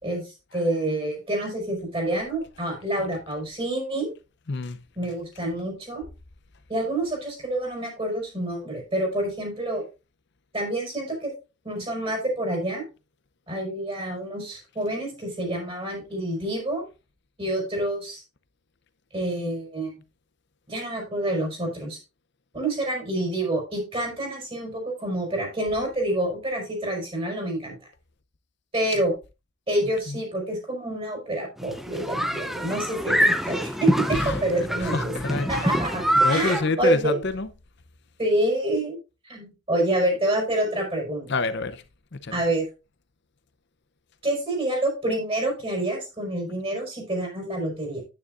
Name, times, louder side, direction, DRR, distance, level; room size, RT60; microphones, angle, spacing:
voice 1, 0.0-4.1 4.9-6.0 6.7-9.8 10.5-11.3 11.6-12.8 13.5-16.8 17.4-18.2 19.1-19.9 20.7-22.0 22.5-27.8 28.7-29.1 29.7-37.2 38.2-39.0 39.2-41.4 42.3-42.7 44.2-48.0, right 1 dB, 25° right, 4.7 m, -27 dB
voice 2, 4.5-4.8 30.1-30.2 34.1-34.4 34.8-35.7 36.2-37.5 41.3-41.8 42.1-42.4, left 3 dB, 50° left, 0.6 m, -27 dB
sound 1, 31.6-36.6, equal, ahead, 0.5 m, -25 dB
9.9 x 9.3 x 2.5 m
head